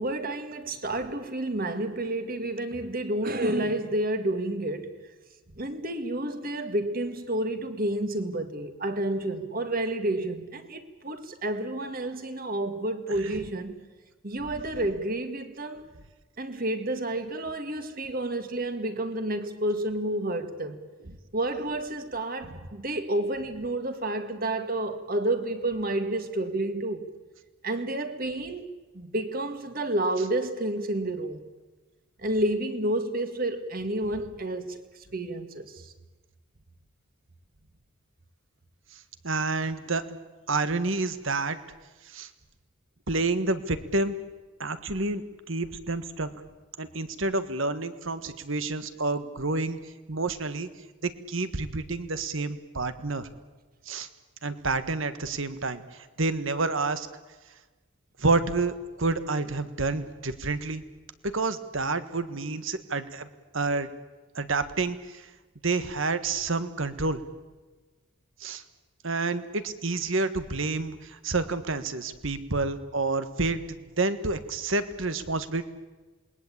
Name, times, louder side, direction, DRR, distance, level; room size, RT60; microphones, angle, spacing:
voice 1, 0.0-4.9 5.6-13.8 14.2-15.9 16.4-20.8 21.3-27.1 27.6-31.4 32.2-34.8 35.1-35.9, right 1 dB, 45° right, 2.1 m, -30 dB
voice 2, 39.2-40.0 40.5-41.6 42.1-42.3 43.1-44.2 44.6-46.3 46.8-49.8 50.1-50.7 51.0-53.3 53.9-54.1 54.4-55.8 56.2-57.1 58.2-60.8 61.2-63.3 63.5-63.9 64.3-65.0 65.6-67.2 68.4-68.6 69.0-73.6 74.0-75.6, right 3 dB, 65° right, 1.6 m, -29 dB
27.5 x 21.0 x 8.7 m
head